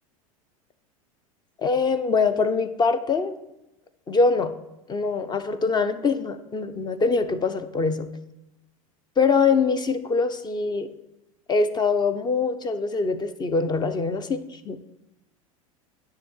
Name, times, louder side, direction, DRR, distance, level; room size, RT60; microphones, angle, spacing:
voice 1, 1.6-3.3 4.1-4.5 4.9-8.1 9.2-10.9 11.5-14.8, left 4 dB, 25° left, 11 dB, 0.9 m, -23 dB
10.5 x 3.8 x 7.3 m, 0.90 s
hypercardioid pair, 85°, 18 cm